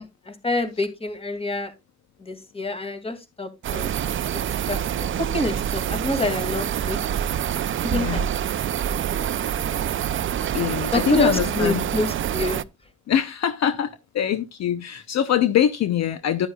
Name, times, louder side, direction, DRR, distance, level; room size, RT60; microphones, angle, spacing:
voice 1, 0.0-1.7 2.2-3.9 4.3-4.4 4.7-7.0 7.8-8.4 8.9-9.3 10.9-12.6, left 2 dB, 20° left, 2.2 m, -28 dB
sound 1, 3.6-12.6, right 10 dB, 45° right, 0.5 m, -26 dB
voice 2, 7.9-8.2 10.5-11.8 13.1-16.5, left 9 dB, 60° left, 0.8 m, -23 dB
11.0 x 9.6 x 2.3 m
cardioid pair, 90°, 30 cm